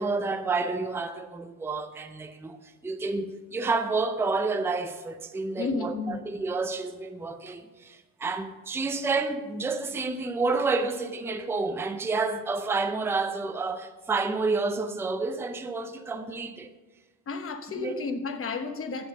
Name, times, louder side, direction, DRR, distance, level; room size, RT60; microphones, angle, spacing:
voice 1, 0.0-2.6 2.8-16.7 17.7-18.1, right 3 dB, 5° right, 0.5 m, -29 dB
voice 2, 5.6-6.2 17.3-19.1, left 4 dB, 30° left, 1.0 m, -32 dB
10.0 x 7.2 x 6.4 m
cardioid pair, 120°, 47 cm